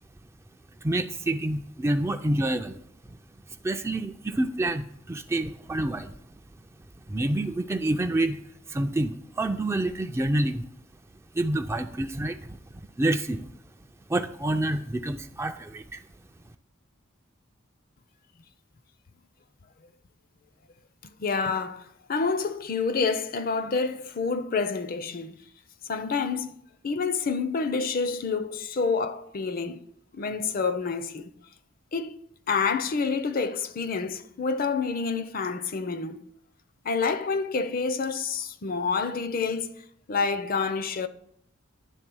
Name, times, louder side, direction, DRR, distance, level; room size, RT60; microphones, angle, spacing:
voice 1, 0.8-2.8 3.1-3.2 3.6-6.2 7.1-8.4 8.7-10.6 11.3-12.6 13.0-13.5 14.1-16.0, right 1 dB, 15° right, 0.3 m, -28 dB
voice 2, 21.2-25.4 25.9-26.5 26.8-29.8 30.1-31.3 31.9-32.2 32.5-36.2 36.8-39.7 40.1-41.1, left 4 dB, 45° left, 0.5 m, -28 dB
10.0 x 3.5 x 6.1 m
head